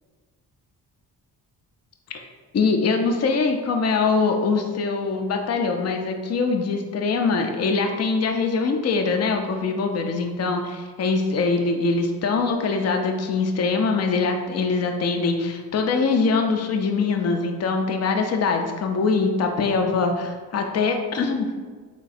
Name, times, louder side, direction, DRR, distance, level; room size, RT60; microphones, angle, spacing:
voice 1, 2.5-21.5, left 4 dB, 30° left, 4 dB, 0.6 m, -23 dB
3.9 x 2.2 x 4.1 m, 1.5 s
hypercardioid pair, 40°, 49 cm